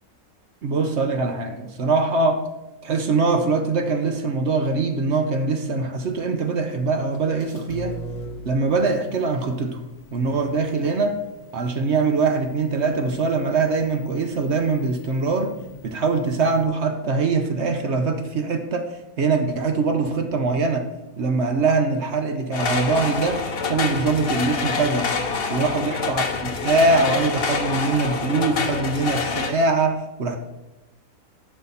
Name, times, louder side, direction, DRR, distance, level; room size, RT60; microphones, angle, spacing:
voice 1, 0.6-2.4 2.8-8.0 8.4-9.8 10.1-11.2 11.5-15.5 15.8-20.9 21.2-25.1 25.5-30.4, right 3 dB, 55° right, 6 dB, 0.9 m, -23 dB
sound 1, 6.0-16.6, left 1 dB, 75° left, 1.2 m, -43 dB
sound 2, 22.5-29.5, left 5 dB, 45° left, 0.9 m, -26 dB
11.0 x 6.0 x 4.1 m, 0.98 s
omnidirectional pair, 1.6 m